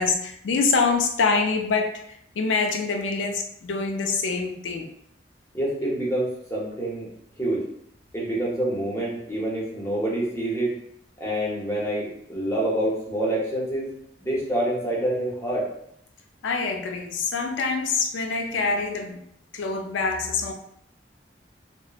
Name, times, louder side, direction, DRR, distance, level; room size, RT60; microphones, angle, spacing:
voice 1, 0.0-4.9 16.4-19.2 19.5-20.5, left 4 dB, 85° left, 4 dB, 0.4 m, -25 dB
voice 2, 5.5-7.1 7.4-7.6 8.1-10.8 11.2-13.9 14.2-15.7, right 1 dB, 15° left, -5 dB, 0.7 m, -27 dB
3.0 x 2.0 x 2.3 m, 0.72 s
head